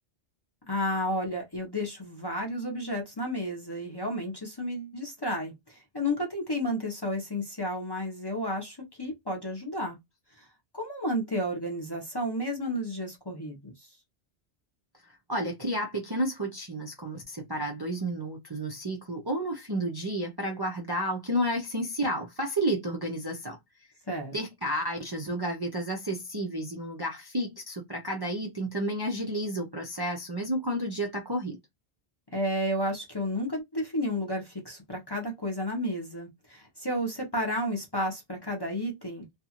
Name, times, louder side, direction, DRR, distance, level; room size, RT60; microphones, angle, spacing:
voice 1, 0.7-10.0 10.4-10.5 10.7-13.9 24.1-24.3 32.3-39.3, equal, 25° left, 0.7 m, -32 dB
voice 2, 15.3-23.6 24.3-31.6, right 1 dB, 30° right, 0.5 m, -31 dB
2.7 x 2.3 x 2.8 m
omnidirectional pair, 1.1 m